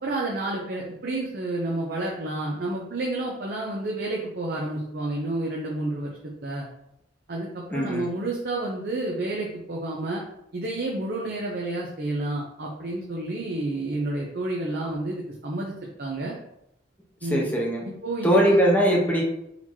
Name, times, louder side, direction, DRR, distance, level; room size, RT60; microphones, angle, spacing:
voice 1, 0.0-6.7 7.3-10.2 10.5-15.7 16.0-16.4 17.2-17.5 18.0-18.6, right 2 dB, 55° right, -2 dB, 0.7 m, -30 dB
voice 2, 7.7-8.1 17.3-17.8 18.2-19.2, equal, 10° left, -2 dB, 0.9 m, -21 dB
4.1 x 2.9 x 4.4 m, 0.81 s
head